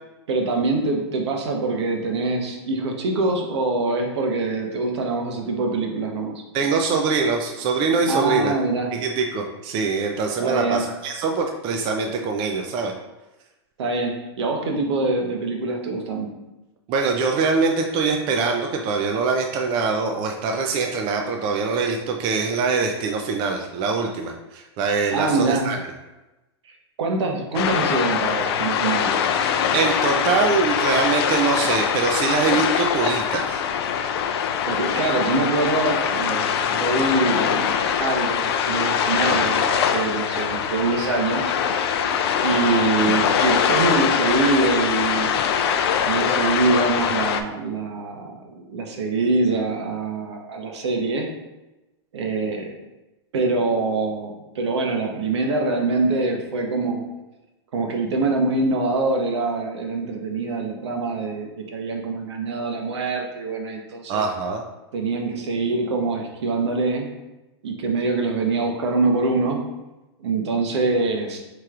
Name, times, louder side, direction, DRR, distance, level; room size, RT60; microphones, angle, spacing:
voice 1, 0.3-6.3 8.1-8.9 10.4-10.8 13.8-16.3 25.1-25.7 27.0-29.1 34.7-41.5 42.4-45.4 46.1-51.3 52.1-52.7 53.3-57.0 57.7-64.2 64.9-67.1 67.6-69.6 70.2-71.4, right 3 dB, 75° right, 2 dB, 0.8 m, -24 dB
voice 2, 6.5-8.5 8.9-12.9 16.9-25.8 29.7-33.6 41.0-41.1 42.1-42.2 64.1-64.6, right 4 dB, 35° right, 3 dB, 0.4 m, -23 dB
sound 1, 27.5-47.4, left 8 dB, 65° left, 0.4 m, -22 dB
4.4 x 3.0 x 2.4 m, 1.0 s
hypercardioid pair, 125°, 14 cm